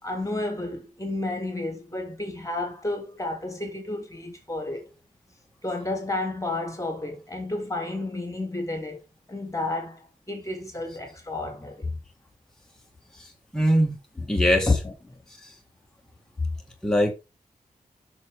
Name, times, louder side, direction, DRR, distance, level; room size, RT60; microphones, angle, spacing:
voice 1, 0.0-4.9 5.6-9.0 9.3-11.9 14.1-15.2, left 2 dB, 20° left, 3.1 m, -31 dB
voice 2, 13.5-14.0 14.3-14.7 16.8-17.1, equal, 5° left, 1.9 m, -21 dB
7.2 x 6.4 x 5.2 m
cardioid pair, 75°, 14 cm